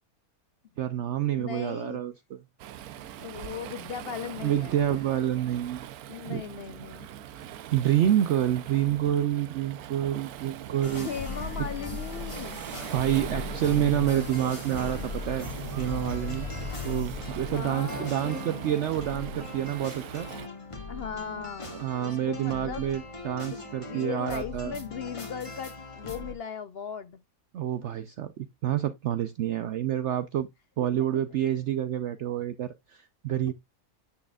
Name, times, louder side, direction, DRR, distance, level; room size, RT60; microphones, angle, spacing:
voice 1, 0.8-2.1 4.4-5.9 6.3-6.4 7.4-7.5 7.7-11.1 12.3-12.4 12.9-15.5 15.8-16.5 16.8-20.3 21.7-24.7 27.5-30.5 30.8-33.5, right 11 dB, 65° right, 0.8 m, -28 dB
voice 2, 1.3-2.0 3.2-5.0 6.1-7.1 11.0-12.6 17.5-18.5 20.9-22.9 23.5-27.2, left 7 dB, 65° left, 0.6 m, -38 dB
Waves surf, 2.6-20.5, right 11 dB, 85° right, 1.1 m, -41 dB
sound 1, 10.8-26.3, left 4 dB, 20° left, 1.4 m, -38 dB
9.8 x 6.3 x 2.3 m
omnidirectional pair, 1.5 m